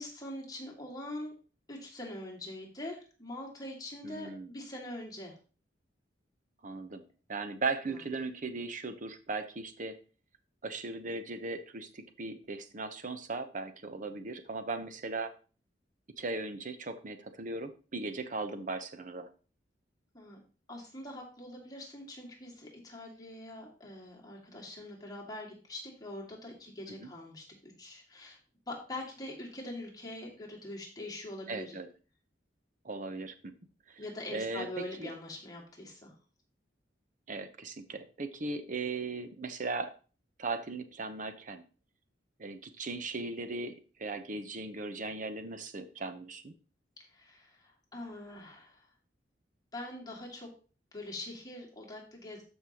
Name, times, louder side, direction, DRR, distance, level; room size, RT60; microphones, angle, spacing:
voice 1, 0.0-1.3 1.7-5.3 7.9-8.0 20.1-20.4 20.7-28.4 28.7-31.8 34.0-36.1 47.1-48.9 49.7-50.5 50.9-52.4, left 1 dB, 20° left, -2 dB, 2.3 m, -43 dB
voice 2, 4.0-4.5 6.6-7.0 7.3-10.0 10.6-15.3 16.2-19.3 27.0-27.1 31.5-31.9 32.8-33.5 33.9-34.0 34.3-35.1 37.3-39.9 40.4-41.6 42.4-46.5, right 3 dB, 45° right, 9 dB, 0.9 m, -38 dB
13.0 x 5.4 x 3.0 m, 0.36 s
head